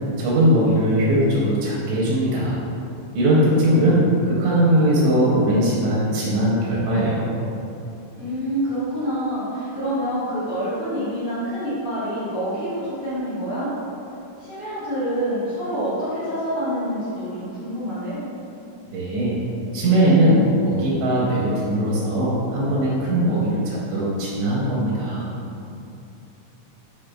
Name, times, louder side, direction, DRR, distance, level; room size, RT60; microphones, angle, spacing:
voice 1, 0.2-2.6 3.2-7.3 18.9-19.4 19.7-25.3, right 1 dB, 85° right, -6 dB, 1.9 m, -20 dB
voice 2, 8.2-13.7 14.4-18.2, equal, 60° left, -12 dB, 1.2 m, -27 dB
5.0 x 3.2 x 2.3 m, 2.7 s
omnidirectional pair, 3.4 m